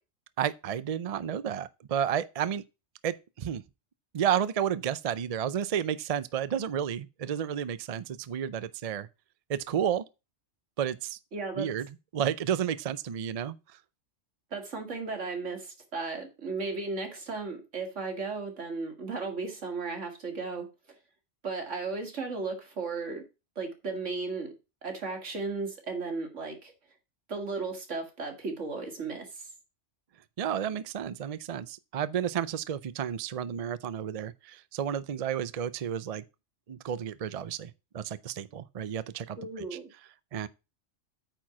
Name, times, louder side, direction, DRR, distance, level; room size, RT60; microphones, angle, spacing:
voice 1, 0.4-2.6 3.0-3.6 4.1-9.1 9.5-10.0 10.8-11.2 11.6-11.9 12.1-13.6 30.4-36.2 36.7-39.8 40.3-40.5, right 9 dB, 50° right, 0.4 m, -31 dB
voice 2, 11.3-11.7 14.5-20.7 21.4-23.3 23.6-24.5 24.8-26.7 27.3-29.5 39.4-39.9, right 4 dB, 75° right, 2.4 m, -35 dB
9.0 x 4.6 x 5.9 m
omnidirectional pair, 1.2 m